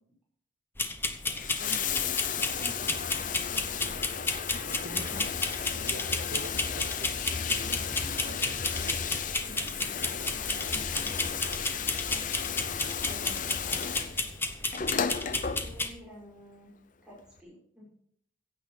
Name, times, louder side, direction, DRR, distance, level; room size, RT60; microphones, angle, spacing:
sound 1, 0.8-15.9, left 2 dB, 10° left, 0.9 m, -33 dB
Bathtub (filling or washing), 1.1-16.1 17.2-17.3, left 7 dB, 40° left, 0.7 m, -34 dB
voice 1, 1.6-4.0 4.5-5.3 5.6-7.1 7.4-9.0 9.4-12.3 14.1-14.4, right 1 dB, 65° right, 7 dB, 1.6 m, -47 dB
sound 2, 7.2-7.3 7.6-7.8 8.6-8.8 9.3-9.4 10.3-10.5 10.9-11.0 11.9-12.1 12.5-12.6 13.5-13.8 14.1-14.2 15.1-15.4 15.8-15.9, equal, 85° left, 4.9 m, -50 dB
voice 2, 13.0-13.9 15.6-16.7 17.0-17.9, equal, 5° right, -6 dB, 6.4 m, -49 dB
15.5 x 8.2 x 5.9 m, 0.66 s
head